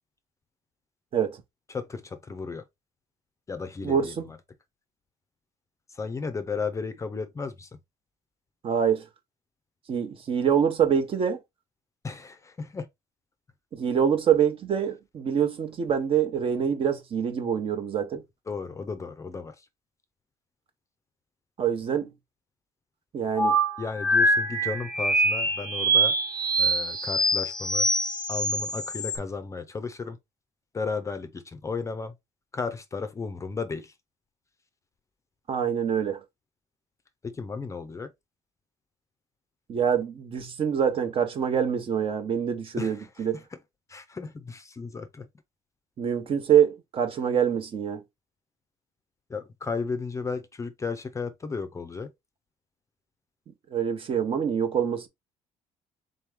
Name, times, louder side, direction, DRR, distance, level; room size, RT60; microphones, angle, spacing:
voice 1, 1.7-2.6 3.5-4.4 5.9-7.7 12.0-12.9 18.5-19.5 23.8-26.1 26.6-27.9 28.3-30.2 30.7-32.1 32.5-33.9 37.2-38.1 42.8-43.4 43.9-45.3 49.3-52.1, left 4 dB, 25° left, 0.5 m, -34 dB
voice 2, 3.8-4.3 8.6-9.0 9.9-11.4 13.7-18.2 21.6-22.1 23.1-23.6 35.5-36.2 39.7-43.4 46.0-48.0 53.7-55.1, right 8 dB, 45° right, 0.9 m, -25 dB
sound 1, 23.4-29.2, right 1 dB, 5° left, 0.9 m, -24 dB
3.7 x 3.0 x 3.5 m
cardioid pair, 105°, 13 cm